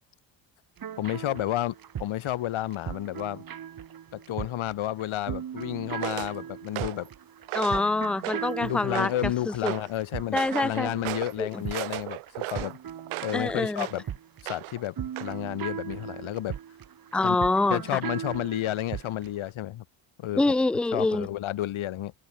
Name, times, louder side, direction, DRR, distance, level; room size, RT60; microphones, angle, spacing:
sound 1, 0.8-19.4, right 9 dB, 45° right, 1.4 m, -38 dB
voice 1, 1.0-3.4 4.1-7.1 8.6-12.8 13.2-14.0 14.4-16.6 17.2-17.4 17.7-19.8 20.2-20.4 20.9-22.1, left 13 dB, 70° left, 1.7 m, -31 dB
sound 2, 6.0-6.3 6.8-7.1 7.5-7.9 8.2-8.6 9.0-9.3 9.7-9.9 10.4-10.7 11.0-11.4 11.7-13.4 13.8-14.0 14.5-14.8 15.2-15.3, right 19 dB, 75° right, 0.7 m, -35 dB
voice 2, 7.5-9.7 10.3-10.9 11.4-11.6 13.3-13.9 17.1-18.0 20.3-21.3, left 2 dB, ahead, 0.5 m, -26 dB
cardioid pair, 90°, 50 cm